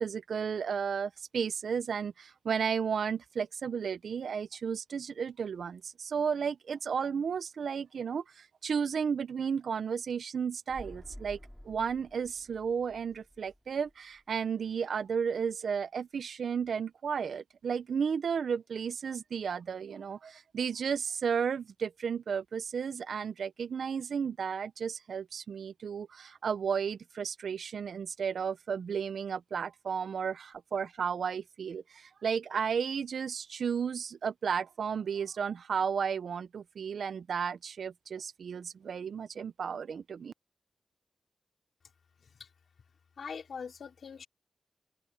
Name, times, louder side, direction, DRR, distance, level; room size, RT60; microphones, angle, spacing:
voice 1, 0.0-11.4 11.6-40.3, right 6 dB, 85° right, 0.5 m, -33 dB
sound 1, 10.7-14.4 14.7-14.8, equal, 5° left, 5.1 m, -51 dB
voice 2, 43.2-44.3, left 6 dB, 80° left, 3.7 m, -43 dB
open air
cardioid pair, 80°, 0 cm